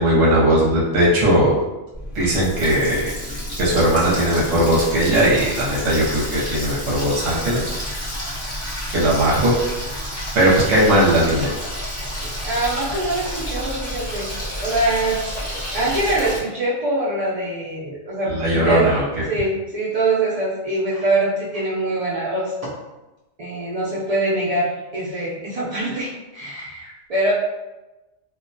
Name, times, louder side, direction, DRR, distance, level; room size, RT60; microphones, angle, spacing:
voice 1, 0.0-1.6 2.1-3.1 3.6-7.6 8.9-9.5 10.3-11.5 18.2-19.0, right 1 dB, 60° right, -6 dB, 0.9 m, -18 dB
Water tap faucet, 1.9-16.4, equal, 25° left, 0.6 m, -30 dB
voice 2, 12.2-14.3 14.6-15.2 15.7-18.9 19.3-22.7 23.4-27.3, right 2 dB, 80° right, -7 dB, 0.3 m, -24 dB
2.3 x 2.1 x 2.6 m, 1.1 s
omnidirectional pair, 1.2 m